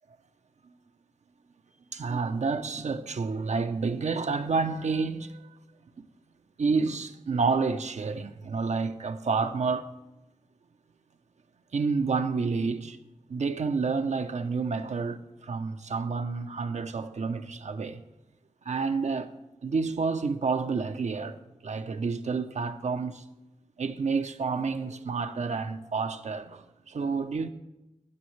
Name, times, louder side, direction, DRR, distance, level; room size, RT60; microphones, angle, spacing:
voice 1, 1.9-5.5 6.0-6.1 6.6-9.9 11.7-13.0 13.3-18.0 18.6-19.3 19.6-21.4 21.6-23.3 23.8-27.5, right 4 dB, 70° right, 0.7 m, -29 dB
16.0 x 7.0 x 3.2 m
cardioid pair, 45°, 12 cm